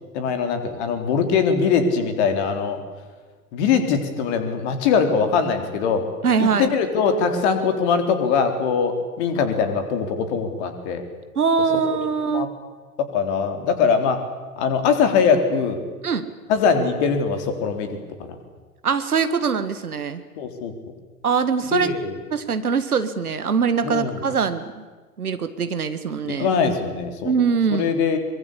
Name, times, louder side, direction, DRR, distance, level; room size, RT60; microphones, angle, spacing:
voice 1, 0.1-2.8 3.5-6.1 6.4-11.0 11.9-12.0 12.3-12.5 13.0-14.2 14.6-15.8 16.5-18.4 20.4-20.7 21.7-22.2 23.8-24.2 26.2-27.3 27.7-28.2, left 6 dB, 50° left, 7 dB, 3.9 m, -22 dB
voice 2, 6.2-6.7 11.4-12.5 16.0-16.3 18.8-20.2 21.2-21.9 22.3-24.8 25.2-26.5 27.2-27.9, right 6 dB, 75° right, 11 dB, 2.0 m, -22 dB
23.5 x 22.5 x 8.6 m, 1.4 s
figure-of-eight pair, 90°, 45 cm